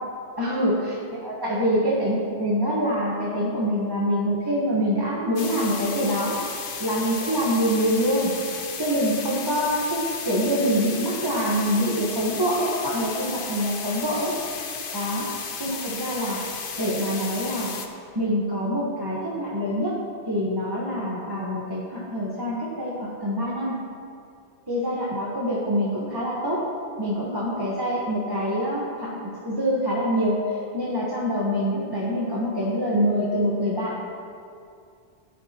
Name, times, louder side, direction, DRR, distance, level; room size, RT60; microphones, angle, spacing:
voice 1, 0.4-6.4 6.8-8.3 8.8-14.3 14.9-16.4 16.8-17.7 18.1-20.0 20.3-23.8 24.7-26.6 27.0-33.9, equal, 20° right, -7 dB, 1.3 m, -25 dB
sound 1, 5.4-17.9, left 5 dB, 55° left, 0.9 m, -34 dB
14.0 x 10.0 x 3.0 m, 2.4 s
omnidirectional pair, 1.2 m